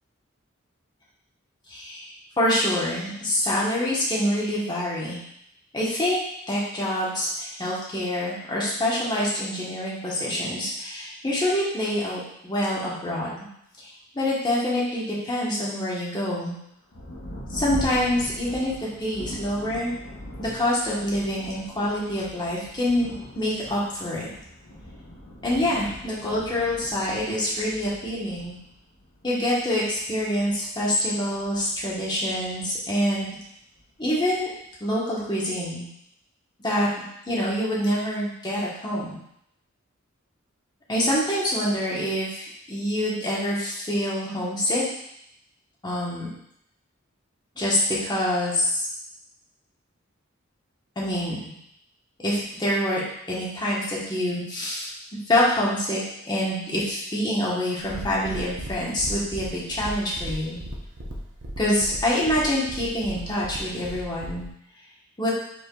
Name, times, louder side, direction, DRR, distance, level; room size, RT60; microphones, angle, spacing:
voice 1, 1.7-2.1 2.4-5.2 5.7-6.2 6.5-13.3 14.1-16.5 17.5-19.9 20.4-24.3 25.4-28.5 29.2-33.3 34.0-34.5 34.8-35.8 36.6-36.9 37.3-39.1 40.9-44.8 45.8-46.3 47.5-48.7 51.0-51.4 52.2-53.0 53.3-54.8 55.3-60.6 61.6-64.4 65.2-65.3, left 1 dB, 20° left, -7 dB, 1.3 m, -26 dB
Thunder, 16.9-33.0 33.7-33.8 34.4-34.8, equal, 90° left, 1.0 m, -41 dB
sound 1, 57.8-64.5, equal, 60° right, 0.8 m, -37 dB
5.1 x 4.3 x 2.4 m, 0.75 s
head